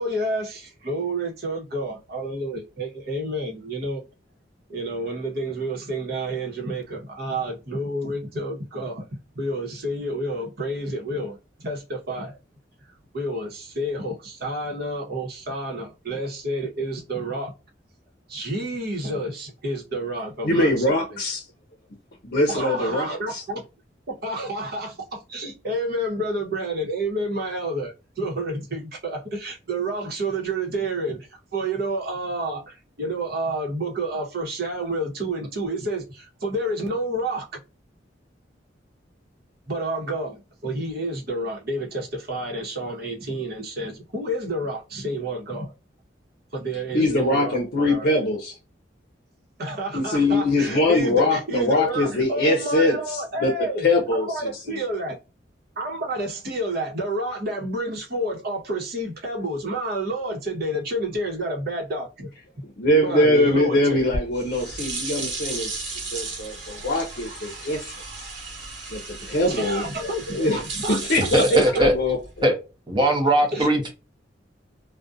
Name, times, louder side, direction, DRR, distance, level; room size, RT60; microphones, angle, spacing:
voice 1, 0.0-4.0 4.7-9.0 9.3-12.4 13.1-17.5 18.3-21.0 22.5-23.6 24.1-37.5 39.7-45.7 46.5-48.1 49.6-55.2 55.8-62.3 63.0-64.1 69.5-71.3 73.5-73.8, right 1 dB, 60° right, 0.9 m, -29 dB
voice 2, 20.4-21.4 22.2-23.4 46.9-48.6 49.9-54.8 62.8-65.7 66.1-68.3 68.9-69.8 70.3-70.6 70.9-72.5, left 1 dB, 55° left, 0.6 m, -22 dB
sound 1, 64.0-72.4, right 3 dB, 85° right, 0.9 m, -34 dB
voice 3, 71.3-71.9 72.4-72.5 72.9-73.9, right 1 dB, 25° right, 0.7 m, -19 dB
2.4 x 2.2 x 2.5 m
head